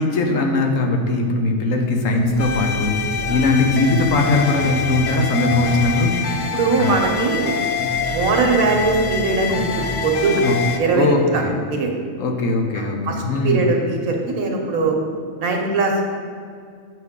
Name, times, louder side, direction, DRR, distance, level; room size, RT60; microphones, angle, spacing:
voice 1, 0.0-6.4 6.8-6.9 10.4-10.6 10.9-11.6 12.2-13.7 14.8-14.9, left 2 dB, 70° left, 2 dB, 1.2 m, -20 dB
sound 1, 1.7-9.9, equal, 20° left, 1.3 m, -32 dB
sound 2, 2.4-10.8, left 5 dB, 90° left, 0.3 m, -26 dB
voice 2, 6.5-7.5 8.1-10.4 10.8-11.4 11.7-11.9 12.8-13.1 13.4-15.0 15.4-16.1, right 3 dB, 90° right, 2 dB, 1.4 m, -20 dB
7.7 x 5.8 x 3.6 m, 2.1 s
omnidirectional pair, 1.4 m